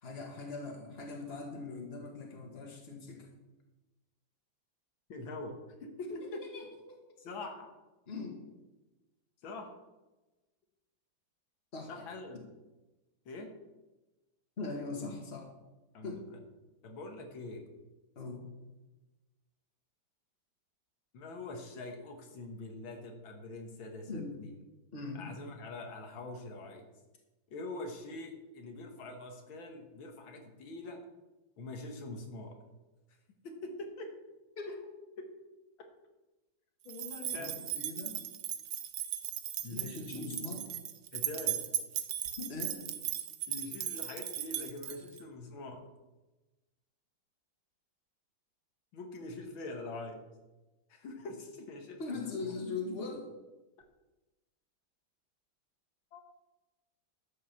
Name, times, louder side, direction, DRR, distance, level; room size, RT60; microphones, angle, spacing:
voice 1, 0.0-3.3 6.2-7.2 8.1-8.4 11.7-12.0 14.6-15.5 16.0-16.3 18.2-18.5 24.1-24.4 24.9-25.3 34.6-34.7 37.4-38.2 39.7-40.6 42.4-42.8 52.0-53.3, left 3 dB, 30° left, 1 dB, 2.1 m, -41 dB
voice 2, 5.1-5.6 5.8-6.4 7.2-7.7 9.4-9.7 11.9-12.4 13.3-13.5 15.9-16.4 16.8-17.6 21.1-24.6 25.2-26.9 27.5-31.0 31.6-32.6 33.4-34.1 35.2-35.3 36.9-37.7 39.6-40.4 41.1-41.6 43.5-45.9 48.9-50.2 50.9-52.5 56.1-56.2, left 2 dB, 90° left, 3 dB, 2.2 m, -44 dB
sound 1, 36.9-45.2, right 11 dB, 70° right, 1.3 m, -37 dB
12.0 x 5.5 x 7.1 m, 1.1 s
omnidirectional pair, 2.1 m